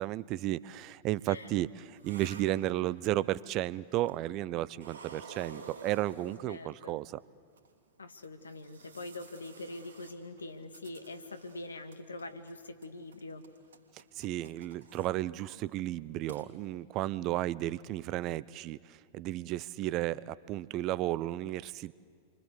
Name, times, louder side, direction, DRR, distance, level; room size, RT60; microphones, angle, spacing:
voice 1, 0.0-7.2 14.2-21.9, right 15 dB, 40° right, 20 dB, 0.7 m, -33 dB
sound 1, 1.4-3.3 4.0-4.5 4.8-6.9 7.6-7.7 8.2-11.6 11.9-12.5 12.8-15.1 15.5-15.7 16.0-16.1 16.3-16.4, right 4 dB, 70° right, 3.2 m, -52 dB
voice 2, 6.5-7.0 8.0-13.5, left 2 dB, 80° left, 9 dB, 2.1 m, -44 dB
29.0 x 24.0 x 8.3 m, 2.1 s
figure-of-eight pair, 95°, 0 cm